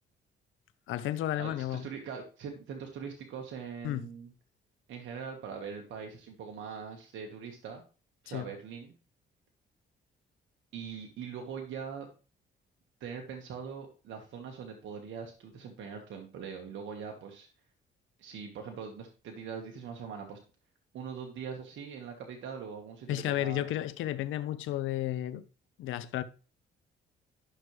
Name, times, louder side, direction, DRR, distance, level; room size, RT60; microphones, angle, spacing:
voice 1, 0.9-1.8 3.8-4.1 8.3-8.5 23.1-25.4 25.8-26.2, left 13 dB, 85° left, 0.6 m, -32 dB
voice 2, 1.4-4.3 4.9-7.8 8.2-8.9 10.7-12.1 13.0-17.5 18.2-20.4 20.9-23.6, right 6 dB, 75° right, 1.4 m, -42 dB
11.5 x 6.0 x 3.2 m
cardioid pair, 90°, 20 cm